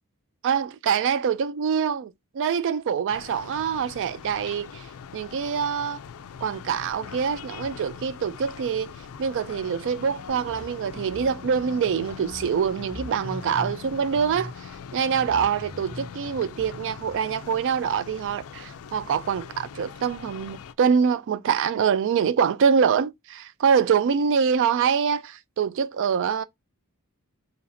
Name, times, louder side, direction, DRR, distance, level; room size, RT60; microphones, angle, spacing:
voice 1, 0.4-4.9 5.1-6.0 6.4-8.9 9.2-26.4, right 7 dB, 55° right, 0.3 m, -25 dB
sound 1, 3.1-20.7, left 7 dB, 70° left, 0.4 m, -42 dB
sound 2, 10.3-17.1, left 1 dB, 30° right, 1.4 m, -43 dB
4.0 x 2.9 x 2.6 m
head